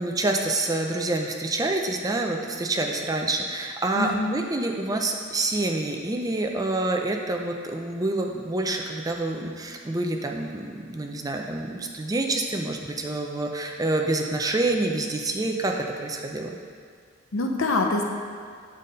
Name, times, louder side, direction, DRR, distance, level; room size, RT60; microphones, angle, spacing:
voice 1, 0.0-16.5, right 2 dB, 20° right, 2 dB, 0.5 m, -27 dB
voice 2, 4.0-4.4 17.3-18.0, left 2 dB, 75° left, 2 dB, 0.8 m, -25 dB
7.3 x 4.1 x 5.2 m, 2.1 s
head